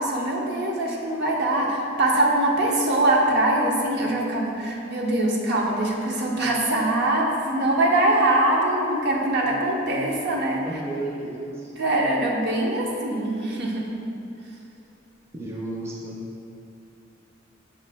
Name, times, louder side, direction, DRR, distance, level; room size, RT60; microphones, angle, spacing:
voice 1, 0.0-10.6 11.8-13.9, right 1 dB, 55° right, -1 dB, 0.6 m, -23 dB
voice 2, 10.6-11.7 15.3-16.2, right 2 dB, 15° right, -4 dB, 0.4 m, -33 dB
5.9 x 2.5 x 3.4 m, 2.7 s
head